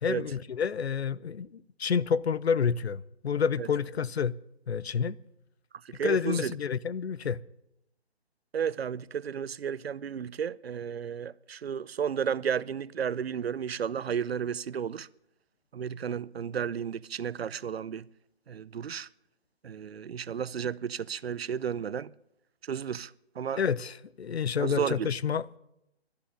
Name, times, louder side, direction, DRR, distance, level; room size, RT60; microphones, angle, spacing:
voice 1, 0.0-4.3 4.7-5.2 6.0-7.4 23.6-25.6, left 6 dB, 70° left, 0.7 m, -29 dB
voice 2, 5.8-6.5 8.5-15.1 15.7-18.1 18.5-19.1 19.6-22.1 22.7-23.6 24.6-25.1, right 7 dB, 65° right, 0.6 m, -33 dB
11.5 x 11.5 x 9.9 m
hypercardioid pair, 160°, 32 cm